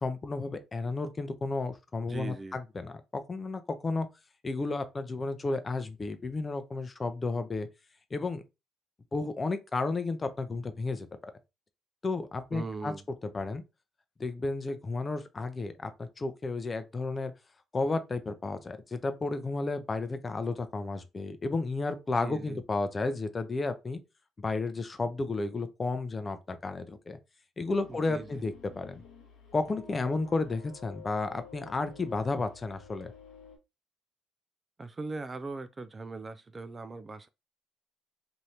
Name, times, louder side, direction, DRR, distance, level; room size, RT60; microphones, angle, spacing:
voice 1, 0.0-4.1 4.4-7.7 8.1-8.4 9.1-11.3 12.0-12.9 13.2-13.6 14.2-17.3 17.7-24.0 24.4-27.2 27.6-29.0 29.5-33.1, left 3 dB, 35° left, 0.5 m, -32 dB
voice 2, 2.1-2.6 12.5-13.0 22.2-22.6 27.9-28.5 34.8-37.3, right 3 dB, 30° right, 0.3 m, -40 dB
sound 1, 27.7-33.6, left 6 dB, 75° left, 0.8 m, -52 dB
2.8 x 2.6 x 3.2 m
hypercardioid pair, 55°, 0 cm